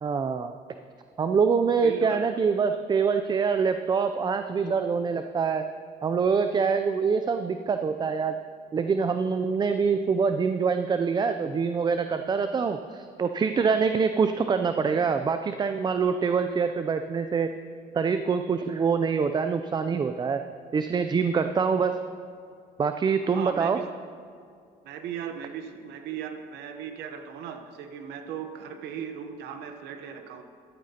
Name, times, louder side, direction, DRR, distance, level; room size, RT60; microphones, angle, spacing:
voice 1, 0.0-0.5 1.2-5.6 6.0-8.4 8.7-17.5 17.9-20.4 20.7-21.9 22.8-23.8, right 5 dB, 25° right, 8 dB, 0.4 m, -25 dB
voice 2, 1.8-2.2 23.2-23.9 24.8-30.4, right 8 dB, 80° right, 6 dB, 0.9 m, -37 dB
13.5 x 13.0 x 2.9 m, 2.4 s
cardioid pair, 110°, 17 cm